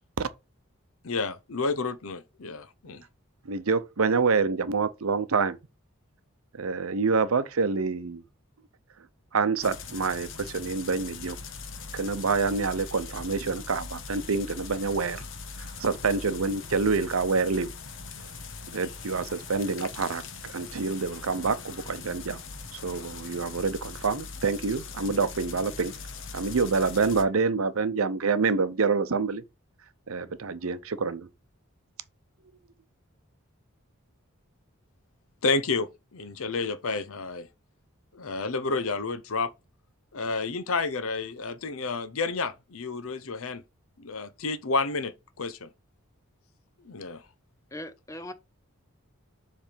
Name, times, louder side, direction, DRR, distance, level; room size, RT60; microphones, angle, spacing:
voice 1, 1.0-3.0 35.4-37.5 38.1-39.5 40.1-43.6 44.0-45.7 46.8-47.2, left 3 dB, 80° left, 0.7 m, -30 dB
voice 2, 3.4-5.6 6.5-8.2 9.3-11.4 11.9-15.2 15.6-17.7 18.7-22.4 22.7-25.9 26.3-29.4 30.1-31.3, right 4 dB, 80° right, 0.7 m, -27 dB
sound 1, 9.6-27.2, left 4 dB, 60° left, 1.0 m, -41 dB
voice 3, 47.7-48.3, left 1 dB, 15° left, 0.7 m, -39 dB
7.3 x 3.3 x 5.1 m
head